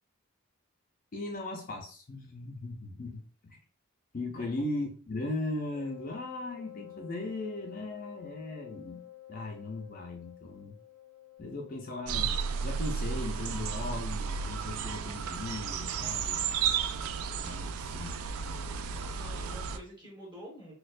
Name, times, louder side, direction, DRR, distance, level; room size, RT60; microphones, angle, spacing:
voice 1, 1.1-3.6 4.1-9.0 9.3-10.7 11.4-12.4 12.6-16.4 17.3-18.2, left 2 dB, 40° left, 1 dB, 0.4 m, -38 dB
voice 2, 4.3-4.6 18.9-20.7, equal, 20° right, -3 dB, 1.3 m, -48 dB
Wind instrument woodwind instrument, 5.7-12.3, left 14 dB, 90° left, 0.6 m, -50 dB
sound 1, 12.1-19.8, right 6 dB, 75° right, 0.3 m, -33 dB
4.1 x 2.2 x 2.5 m, 0.41 s
head